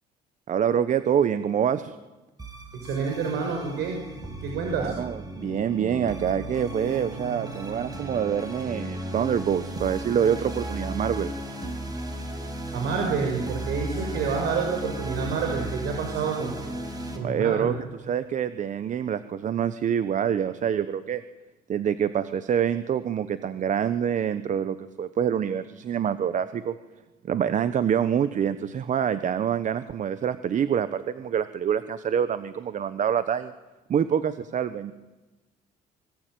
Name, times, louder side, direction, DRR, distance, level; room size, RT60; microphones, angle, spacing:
voice 1, 0.5-1.9 4.8-11.3 17.2-21.2 21.7-26.7 27.2-33.5 33.9-34.9, right 8 dB, 45° right, 12 dB, 1.2 m, -26 dB
sound 1, 2.4-17.2, right 1 dB, 20° right, 7.0 m, -35 dB
voice 2, 2.8-4.0 4.4-4.9 12.7-16.5 17.1-17.7, right 5 dB, 80° right, 2 dB, 6.0 m, -28 dB
26.0 x 24.0 x 9.4 m, 1.1 s
cardioid pair, 110°, 17 cm